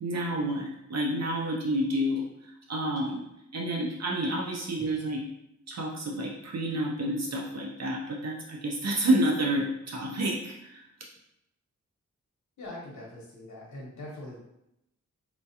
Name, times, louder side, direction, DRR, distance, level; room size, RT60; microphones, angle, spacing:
voice 1, 0.0-2.3 2.7-3.3 3.5-5.3 5.7-10.8, right 1 dB, 60° right, -1 dB, 0.5 m, -29 dB
voice 2, 12.6-14.4, left 1 dB, 70° left, -4 dB, 0.9 m, -42 dB
4.3 x 2.3 x 2.8 m, 0.83 s
wide cardioid pair, 155°, 30 cm